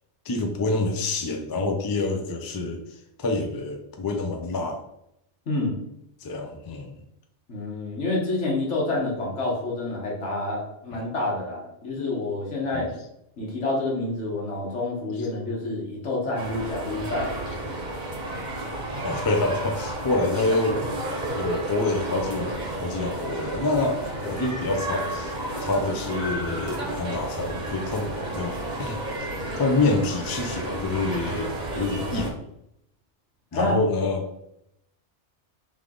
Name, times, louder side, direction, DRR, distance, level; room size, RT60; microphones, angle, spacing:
voice 1, 0.3-2.8 3.2-4.8 6.2-6.9 12.7-12.8 15.2-15.3 19.0-20.8 21.4-29.0 29.6-32.4 33.5-34.3, left 2 dB, 35° left, 4 dB, 0.3 m, -27 dB
voice 2, 7.5-12.9 13.4-17.3 33.5-33.7, left 2 dB, 85° left, -3 dB, 1.6 m, -28 dB
sound 1, 16.4-32.3, right 1 dB, 45° right, 0.9 m, -32 dB
3.4 x 3.3 x 3.8 m, 0.80 s
omnidirectional pair, 1.2 m